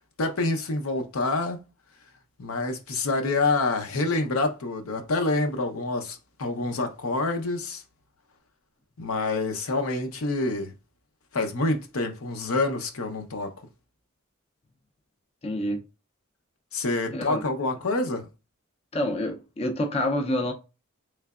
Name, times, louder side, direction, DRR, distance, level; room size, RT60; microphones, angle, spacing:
voice 1, 0.2-1.6 2.4-7.8 9.0-10.7 11.3-13.5 16.7-18.3, left 2 dB, 80° left, 0.7 m, -27 dB
voice 2, 15.4-15.8 17.1-17.4 18.9-20.5, left 1 dB, 30° left, 0.5 m, -27 dB
3.8 x 3.3 x 2.3 m
head